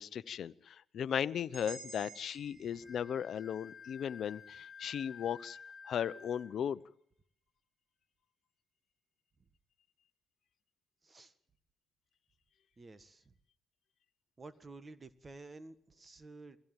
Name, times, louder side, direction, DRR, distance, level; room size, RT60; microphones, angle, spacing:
voice 1, 0.0-5.6 5.9-6.8, left 8 dB, 60° left, 0.9 m, -37 dB
sound 1, 1.5-5.6, right 3 dB, 70° right, 7.8 m, -54 dB
voice 2, 2.5-2.9 11.0-11.3 12.8-13.3 14.4-16.6, right 3 dB, 30° right, 1.7 m, -52 dB
Wind instrument woodwind instrument, 2.8-6.5, left 6 dB, 30° left, 7.3 m, -52 dB
22.5 x 16.5 x 9.2 m
cardioid pair, 90°, 0 cm